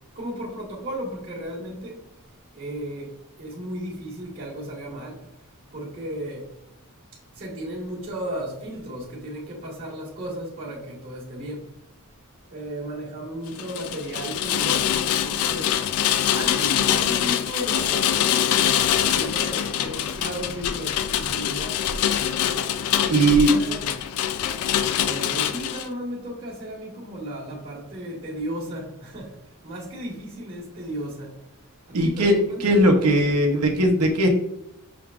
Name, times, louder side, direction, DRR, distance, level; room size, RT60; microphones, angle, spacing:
voice 1, 0.1-2.0 2.5-3.1 3.4-5.2 5.7-6.4 7.4-11.6 12.5-15.7 16.3-18.5 19.0-21.8 23.0-23.9 25.0-29.3 29.6-31.3 32.0-33.2, right 1 dB, 40° right, 1.3 m, -34 dB
Rain, 13.5-25.9, left 10 dB, 80° left, 0.3 m, -24 dB
voice 2, 23.1-23.5 31.9-32.3 32.6-34.3, right 1 dB, 85° right, 0.7 m, -18 dB
5.9 x 3.4 x 2.3 m
head